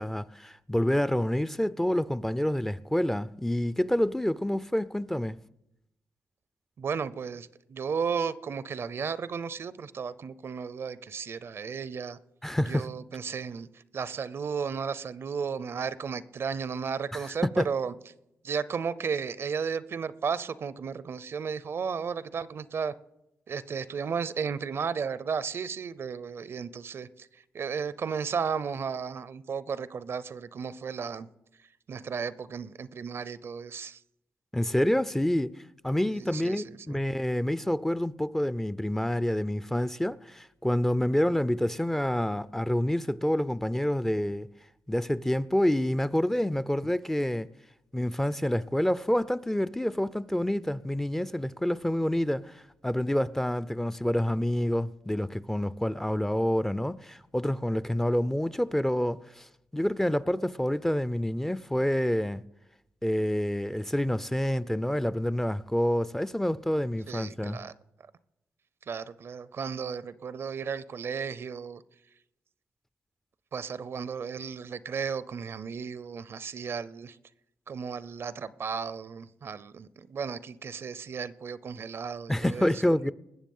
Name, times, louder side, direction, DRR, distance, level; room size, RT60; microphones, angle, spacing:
voice 1, 0.0-5.4 12.4-12.9 17.1-17.3 17.6-17.7 34.5-44.5 44.9-47.5 47.9-59.5 59.7-62.4 63.0-67.6 82.3-83.1, left 1 dB, 10° left, 0.4 m, -28 dB
voice 2, 6.8-12.2 12.7-13.7 13.9-17.9 18.4-22.9 23.5-27.3 27.5-31.3 31.9-34.0 36.1-37.0 67.1-67.7 68.9-71.8 73.5-77.2 77.7-83.0, right 6 dB, 60° right, 0.6 m, -34 dB
20.5 x 7.1 x 5.5 m
cardioid pair, 65°, 5 cm